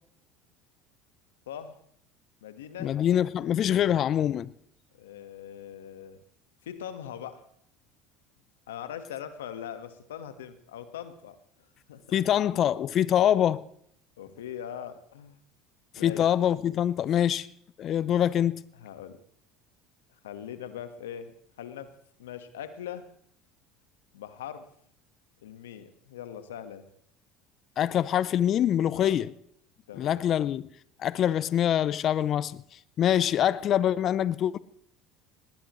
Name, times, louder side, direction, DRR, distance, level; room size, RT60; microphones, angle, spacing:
voice 1, 1.5-1.8 2.4-2.9 4.9-6.2 6.6-7.4 8.7-12.2 14.2-15.4 16.0-16.2 18.7-19.2 20.2-21.9 22.2-23.1 24.1-24.7 25.4-26.9 29.0-29.2 29.9-30.2, left 9 dB, 85° left, 1.4 m, -41 dB
voice 2, 2.8-4.5 12.1-13.6 16.0-17.5 17.8-18.6 27.8-29.3 30.0-30.6 31.0-32.6 33.0-34.6, left 10 dB, 50° left, 0.6 m, -24 dB
19.5 x 18.5 x 3.1 m
hypercardioid pair, 80°, 0 cm